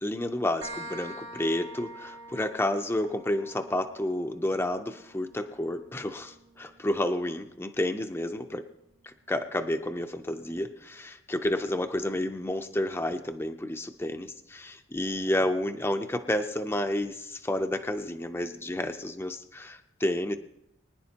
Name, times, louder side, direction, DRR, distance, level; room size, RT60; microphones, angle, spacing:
voice 1, 0.0-8.6 9.0-20.4, left 1 dB, 10° left, 5 dB, 0.5 m, -30 dB
sound 1, 0.6-8.0, right 1 dB, 70° right, 1.7 m, -46 dB
24.0 x 10.0 x 2.9 m, 0.83 s
head